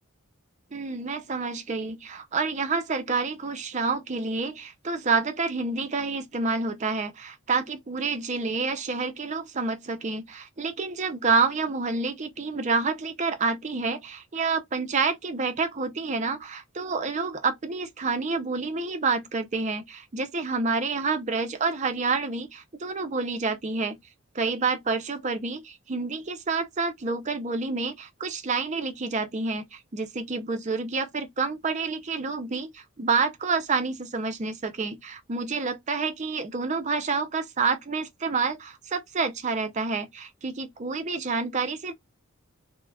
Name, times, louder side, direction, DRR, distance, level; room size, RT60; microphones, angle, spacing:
voice 1, 0.7-24.0 24.3-41.9, right 4 dB, 35° right, 0.5 m, -28 dB
2.3 x 2.1 x 3.3 m
head